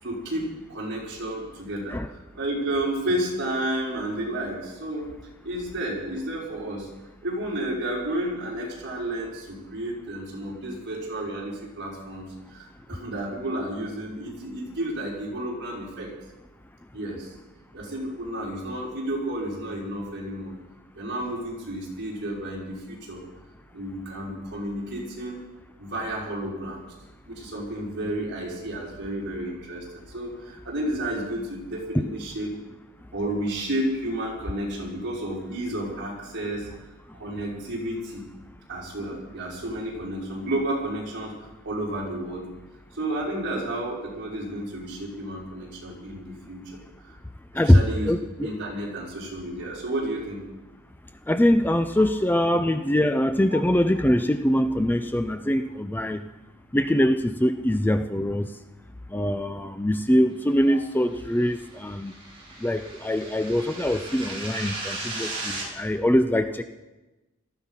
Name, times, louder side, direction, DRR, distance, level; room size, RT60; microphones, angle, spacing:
voice 1, 0.0-5.0 5.4-6.9 7.2-12.3 12.5-16.1 16.9-17.3 17.7-20.5 21.0-23.2 23.7-25.4 25.8-26.8 27.3-32.5 33.1-36.7 37.2-38.2 38.7-41.3 41.6-42.4 42.9-46.8 47.6-48.1 48.4-50.4 52.5-52.6 53.5-53.6 60.7-60.8, right 1 dB, 55° right, -4 dB, 5.6 m, -31 dB
voice 2, 47.5-48.5 51.3-56.2 56.7-58.5 59.1-62.1 62.6-66.6, left 1 dB, 10° left, 9 dB, 0.5 m, -23 dB
sound 1, 61.2-65.7, right 2 dB, 25° right, 4.8 m, -36 dB
18.0 x 14.0 x 5.7 m, 1.1 s
head